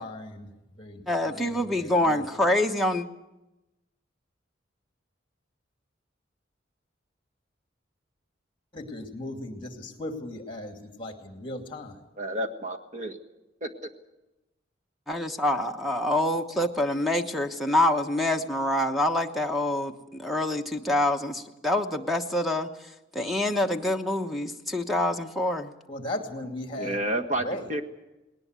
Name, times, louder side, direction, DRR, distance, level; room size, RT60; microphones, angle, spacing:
voice 1, 0.0-2.2 8.7-12.0 25.9-27.0 27.4-27.6, left 1 dB, 25° left, 5 dB, 2.6 m, -37 dB
voice 2, 1.1-3.1 15.1-25.7, left 1 dB, ahead, 5 dB, 1.1 m, -26 dB
voice 3, 12.2-13.2 13.6-13.7 23.3-23.4 26.8-27.8, right 1 dB, 40° right, 4 dB, 1.7 m, -30 dB
20.0 x 19.0 x 8.3 m, 1.0 s
head